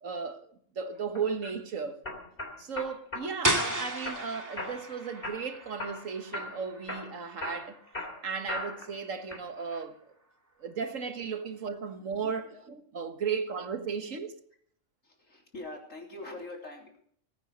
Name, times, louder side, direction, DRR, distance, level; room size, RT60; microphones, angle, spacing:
voice 1, 0.0-0.5 0.8-2.0 2.6-7.8 8.2-10.0 10.6-14.3, right 6 dB, 85° right, 1.8 m, -35 dB
sound 1, 1.1-1.5 2.0-3.3 3.6-4.2 4.6-4.9 5.2-6.0 6.3-6.6 6.9-8.9 9.3-9.8, left 2 dB, 45° left, 3.6 m, -38 dB
sound 2, 3.4-9.1, right 1 dB, 15° right, 2.0 m, -35 dB
voice 2, 15.0-17.0, left 2 dB, 85° left, 4.0 m, -44 dB
20.5 x 9.3 x 6.6 m
omnidirectional pair, 1.3 m